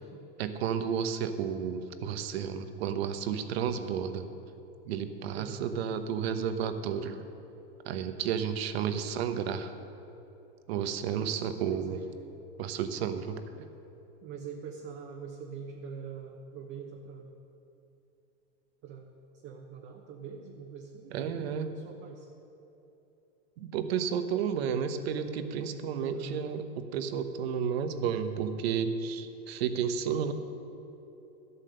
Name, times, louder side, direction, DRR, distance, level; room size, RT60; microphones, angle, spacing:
voice 1, 0.4-4.2 4.9-7.2 7.8-9.7 10.7-12.0 12.6-13.4 21.1-21.7 23.6-30.3, right 7 dB, 80° right, 9 dB, 1.0 m, -32 dB
voice 2, 5.3-5.7 11.2-12.1 13.4-13.7 14.2-17.3 18.8-19.1 19.4-22.3 26.1-26.4, right 6 dB, 35° right, 1 dB, 1.0 m, -44 dB
13.0 x 8.3 x 6.5 m, 3.0 s
supercardioid pair, 145°, 31 cm